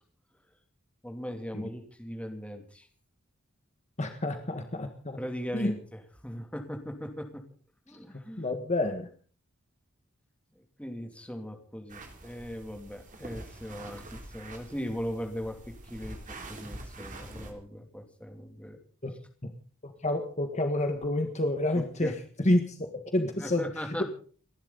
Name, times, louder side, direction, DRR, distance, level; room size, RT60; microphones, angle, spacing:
voice 1, 1.0-2.9 5.2-7.4 7.9-8.5 10.5-15.6 15.8-16.2 16.5-18.8 21.7-22.1 23.4-24.0, equal, 5° left, 4 dB, 2.9 m, -39 dB
voice 2, 4.0-5.2 5.5-5.7 7.9-9.1 19.0-19.1 19.4-19.5 19.8-22.1 22.4-24.0, left 1 dB, 35° left, 6 dB, 1.6 m, -29 dB
sound 1, 11.9-17.5, right 2 dB, 40° right, 3.4 m, -45 dB
30.0 x 11.5 x 4.0 m, 0.43 s
head